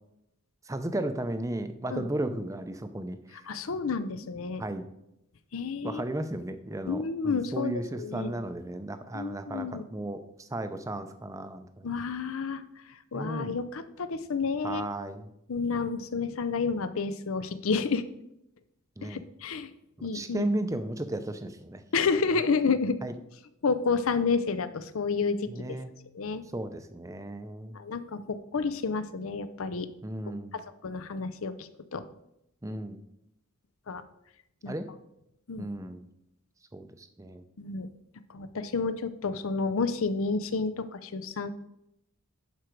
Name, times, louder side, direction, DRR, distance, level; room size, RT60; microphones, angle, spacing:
voice 1, 0.7-3.4 4.6-4.9 5.8-11.9 13.1-13.6 14.6-15.3 19.0-19.2 20.0-21.8 23.0-23.1 25.5-25.9 26.5-27.8 30.0-30.6 32.6-33.0 34.6-34.9 35.6-36.1 36.7-37.4, right 1 dB, 15° right, 9 dB, 0.5 m, -35 dB
voice 2, 3.5-4.6 5.5-6.0 6.9-8.4 9.1-9.8 11.8-12.6 13.1-14.9 15.5-18.0 19.0-19.7 20.0-20.5 21.9-23.0 23.6-25.8 26.1-26.4 27.7-29.9 30.5-32.0 33.9-34.0 34.6-34.8 35.5-35.7 37.6-37.9 38.3-41.5, left 4 dB, 70° left, 13 dB, 0.6 m, -30 dB
11.5 x 5.0 x 4.6 m, 0.84 s
head